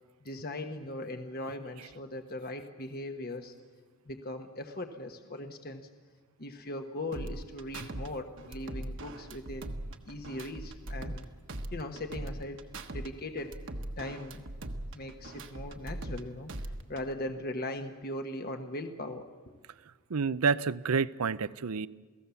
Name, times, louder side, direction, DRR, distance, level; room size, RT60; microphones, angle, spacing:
voice 1, 0.2-3.5 4.1-5.9 6.4-9.8 10.0-11.3 11.7-12.6 12.9-13.5 14.0-14.4 14.9-19.3, left 1 dB, 45° left, 6 dB, 1.2 m, -39 dB
sound 1, 7.1-8.1 8.4-11.2 11.5-13.1 13.4-16.2 16.5-17.1, right 1 dB, 60° right, 1.3 m, -40 dB
voice 2, 20.1-21.9, right 5 dB, 80° right, 17 dB, 0.6 m, -29 dB
28.5 x 17.5 x 7.0 m, 1.4 s
head